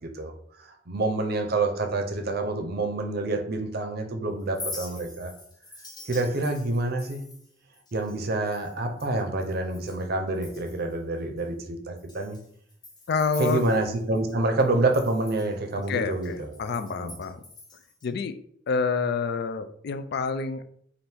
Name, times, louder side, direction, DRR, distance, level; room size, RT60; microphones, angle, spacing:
voice 1, 0.0-0.3 0.6-5.3 6.1-7.2 7.9-12.4 13.4-16.7 17.0-17.2, right 2 dB, 55° right, 5 dB, 0.6 m, -27 dB
Chink clink, 4.4-10.1 10.3-10.9 11.4-11.5 12.0-14.3 14.6-18.1, left 2 dB, 20° left, 1.0 m, -44 dB
voice 2, 13.1-13.6 15.9-17.4 18.0-18.3 18.7-20.6, left 4 dB, 55° left, 10 dB, 0.4 m, -28 dB
3.4 x 2.6 x 4.4 m, 0.65 s
head